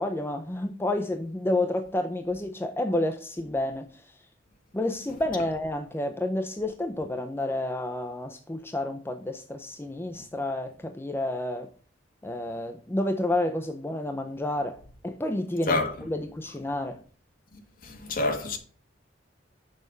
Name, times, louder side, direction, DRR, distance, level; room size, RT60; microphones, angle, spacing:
voice 1, 0.0-3.9 4.7-11.7 12.2-17.0, left 1 dB, 10° left, 0.5 m, -30 dB
voice 2, 17.8-18.6, left 2 dB, 50° left, 1.4 m, -27 dB
6.4 x 5.1 x 6.8 m
head